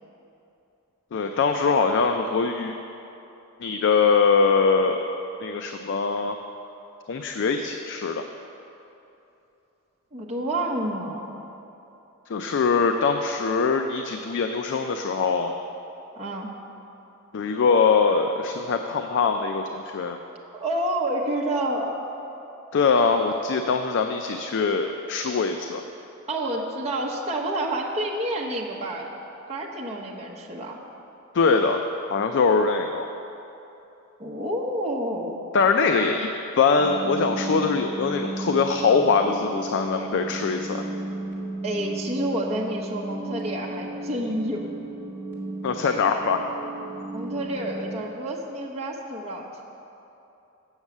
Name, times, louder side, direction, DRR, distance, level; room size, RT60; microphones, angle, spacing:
voice 1, 1.1-2.7 3.6-5.0 5.4-6.4 7.1-8.2 12.3-15.5 17.3-20.2 22.7-25.8 31.3-31.8 32.1-33.1 35.5-36.3 36.6-40.8 45.6-46.5, left 5 dB, 60° left, 5 dB, 0.4 m, -22 dB
voice 2, 10.1-11.4 16.2-16.5 20.5-22.0 26.3-29.1 29.5-30.8 34.2-35.4 41.6-44.7 47.1-49.5, right 1 dB, 30° right, -3 dB, 1.0 m, -29 dB
sound 1, 36.7-48.0, right 1 dB, 10° right, 2.0 m, -34 dB
8.1 x 6.3 x 7.2 m, 2.9 s
head